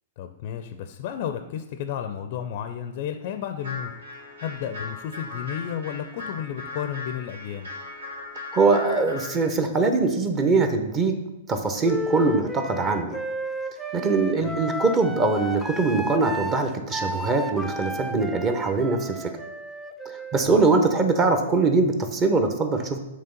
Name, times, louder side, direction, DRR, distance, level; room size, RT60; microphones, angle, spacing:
voice 1, 0.2-3.9 4.4-7.7 14.4-14.6 20.5-20.6, left 9 dB, 50° left, 8 dB, 0.4 m, -32 dB
sound 1, 3.6-9.4, left 3 dB, 85° right, 1.5 m, -38 dB
voice 2, 8.5-11.2 11.5-13.2 13.9-19.3 20.3-23.0, right 3 dB, 25° right, 6 dB, 0.9 m, -22 dB
Wind instrument woodwind instrument, 11.8-21.6, equal, 10° right, 0.5 m, -34 dB
6.8 x 3.2 x 5.2 m, 1.0 s
hypercardioid pair, 115°, 0 cm